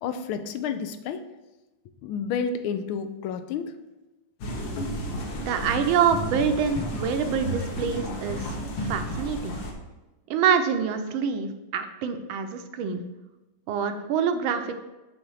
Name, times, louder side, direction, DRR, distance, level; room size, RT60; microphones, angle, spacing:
voice 1, 0.0-1.2 2.0-3.7, left 6 dB, 85° left, 10 dB, 1.4 m, -30 dB
sound 1, 4.4-9.7, equal, 65° left, 1.8 m, -32 dB
voice 2, 5.4-9.6 10.3-13.0 13.7-14.7, right 7 dB, 80° right, 7 dB, 1.5 m, -26 dB
8.0 x 3.5 x 6.3 m, 1.1 s
omnidirectional pair, 2.3 m